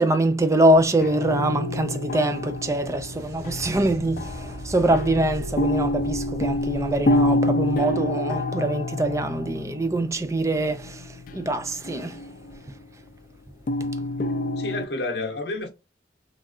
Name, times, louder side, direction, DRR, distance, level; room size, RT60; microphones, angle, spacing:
voice 1, 0.0-11.0 11.3-12.2, right 1 dB, 15° right, 0.4 m, -23 dB
sound 1, 0.8-12.6 13.7-14.9, left 1 dB, 50° left, 0.4 m, -28 dB
sound 2, 1.9-9.4 12.8-12.9 13.9-14.0, equal, 60° right, 0.7 m, -40 dB
voice 2, 14.6-15.7, left 2 dB, 70° left, 0.8 m, -30 dB
3.5 x 2.3 x 2.5 m
head